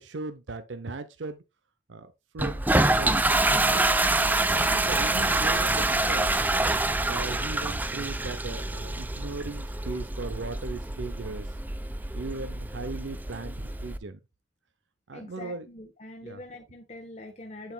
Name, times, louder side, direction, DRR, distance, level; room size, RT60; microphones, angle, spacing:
voice 1, 0.0-1.4 1.9-2.6 3.0-6.5 7.0-11.6 12.1-14.2 15.1-15.7 16.2-16.4, right 3 dB, 80° right, 0.6 m, -38 dB
Toilet flush, 2.4-14.0, right 2 dB, 10° right, 0.4 m, -26 dB
voice 2, 15.1-17.7, left 2 dB, 40° left, 1.0 m, -43 dB
8.1 x 7.2 x 2.2 m
head